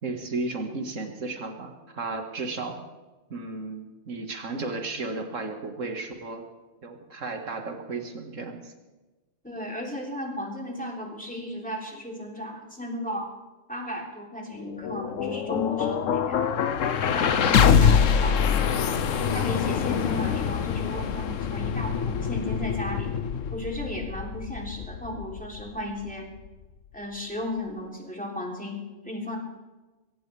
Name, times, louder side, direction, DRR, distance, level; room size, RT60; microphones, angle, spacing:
voice 1, 0.0-2.8 3.3-6.4 6.8-8.7, right 3 dB, 85° right, 3 dB, 2.2 m, -34 dB
voice 2, 9.4-13.3 13.7-16.4 17.0-18.8 19.2-23.1 23.5-26.3 26.9-29.4, left 1 dB, 5° left, -1 dB, 3.2 m, -34 dB
sound 1, 14.6-26.6, left 7 dB, 90° left, 1.2 m, -25 dB
22.5 x 17.0 x 3.5 m, 1.2 s
omnidirectional pair, 1.3 m